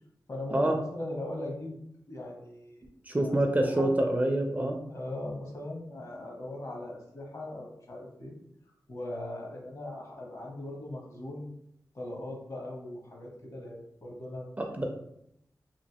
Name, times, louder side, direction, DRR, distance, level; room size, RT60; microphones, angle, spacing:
voice 1, 0.3-1.8 2.1-2.8 3.2-3.9 4.9-8.4 8.9-11.5 11.9-14.5, left 1 dB, 55° left, -1 dB, 1.0 m, -39 dB
voice 2, 3.1-4.8 14.6-14.8, right 1 dB, 25° right, 3 dB, 0.4 m, -26 dB
3.1 x 2.5 x 2.8 m, 0.76 s
wide cardioid pair, 75°, 7 cm